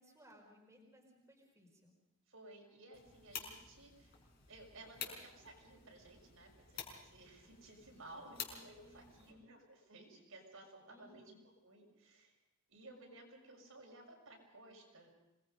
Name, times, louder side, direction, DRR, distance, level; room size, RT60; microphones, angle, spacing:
voice 1, 0.0-1.9 8.4-9.5 10.9-11.4, equal, 15° right, -1 dB, 4.6 m, -63 dB
voice 2, 2.3-4.2 4.5-12.4 12.7-15.1, right 2 dB, 70° right, 0 dB, 6.8 m, -57 dB
sound 1, 2.9-9.3, left 7 dB, 45° left, 5.1 m, -51 dB
26.5 x 21.0 x 5.4 m, 0.95 s
head